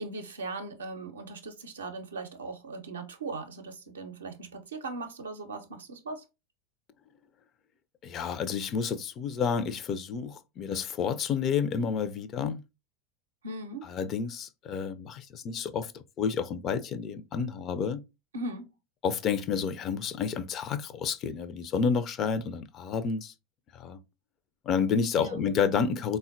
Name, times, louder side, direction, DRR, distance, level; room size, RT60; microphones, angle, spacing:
voice 1, 0.0-6.2 13.4-13.9 18.3-18.7 25.2-25.4, right 2 dB, 75° right, 0.5 m, -39 dB
voice 2, 8.0-12.6 13.9-18.0 19.0-23.3 23.7-24.0 24.7-26.2, left 6 dB, 40° left, 0.4 m, -30 dB
3.7 x 2.1 x 2.4 m
figure-of-eight pair, 80°, 0 cm